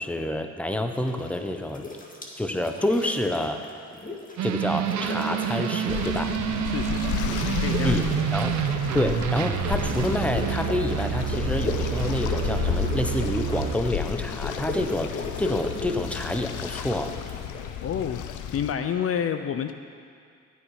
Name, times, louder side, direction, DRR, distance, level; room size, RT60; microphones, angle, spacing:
voice 1, 0.0-1.9 2.4-3.6 4.4-6.3 7.8-8.1 8.3-8.5 8.9-17.1, left 1 dB, 5° left, 6 dB, 0.9 m, -28 dB
sound 1, 0.9-1.4 1.7-4.5 4.7-6.5 6.7-18.2, left 3 dB, 25° left, 2.0 m, -37 dB
sound 2, 4.4-13.8, right 10 dB, 65° right, 0.8 m, -28 dB
sound 3, 5.9-18.7, left 10 dB, 85° left, 0.8 m, -32 dB
voice 2, 6.6-7.1 7.5-8.1 17.8-18.2 18.5-19.7, left 8 dB, 50° left, 8 dB, 0.6 m, -29 dB
15.5 x 9.3 x 4.9 m, 2.2 s
cardioid pair, 90°, 30 cm